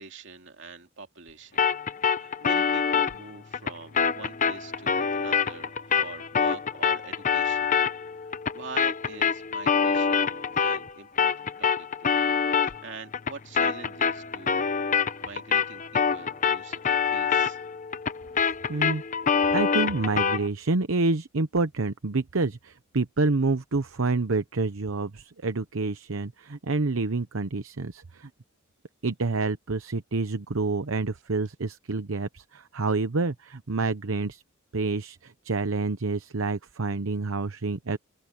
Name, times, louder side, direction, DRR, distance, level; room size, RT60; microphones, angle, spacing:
voice 1, 0.0-1.7 2.1-7.7 8.2-17.6, right 4 dB, 60° right, 2.8 m, -44 dB
sound 1, 1.6-10.9 11.2-20.5, left 6 dB, 40° left, 0.8 m, -26 dB
voice 2, 18.4-19.0 19.5-28.3 29.0-34.4 34.7-38.0, right 3 dB, 75° right, 0.9 m, -28 dB
open air
head